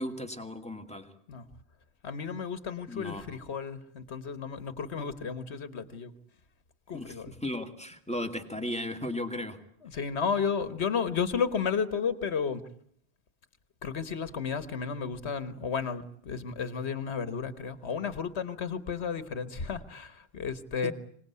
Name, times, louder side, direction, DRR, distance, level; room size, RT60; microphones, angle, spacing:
voice 1, 0.0-1.1 2.9-3.4 6.9-9.6 20.8-20.9, left 1 dB, 5° left, 6 dB, 2.3 m, -36 dB
voice 2, 2.0-6.1 6.9-7.3 9.8-12.6 13.8-20.9, left 6 dB, 85° left, 12 dB, 1.6 m, -33 dB
25.5 x 19.0 x 9.6 m, 0.69 s
omnidirectional pair, 1.1 m